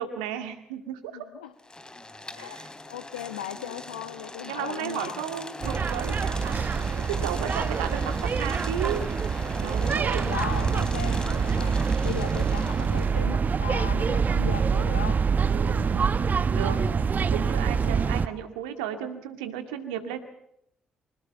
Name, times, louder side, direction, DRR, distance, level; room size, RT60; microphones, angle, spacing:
voice 1, 0.0-1.1 2.4-2.7 4.4-6.5 6.9-9.0 9.6-10.3 11.6-11.9 15.5-16.3 16.5-16.8 17.3-20.2, right 9 dB, 80° right, 8 dB, 2.2 m, -34 dB
voice 2, 1.1-1.5 2.3-2.6 2.9-5.2 10.3-15.2 17.8-18.1, left 10 dB, 85° left, 9 dB, 1.2 m, -37 dB
sound 1, 1.6-13.2, left 2 dB, 20° left, 3.3 m, -40 dB
sound 2, 5.6-18.3, right 6 dB, 40° right, 1.2 m, -25 dB
26.0 x 18.5 x 7.0 m, 0.76 s
figure-of-eight pair, 45°, 4 cm